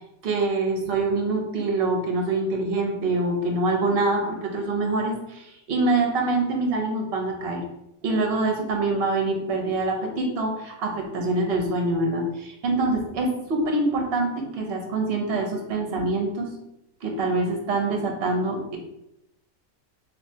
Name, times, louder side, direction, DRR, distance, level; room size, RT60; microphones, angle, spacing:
voice 1, 0.2-7.6 8.0-16.5 17.0-18.8, right 2 dB, 55° right, 2 dB, 0.8 m, -25 dB
3.2 x 3.1 x 2.7 m, 0.83 s
omnidirectional pair, 1.4 m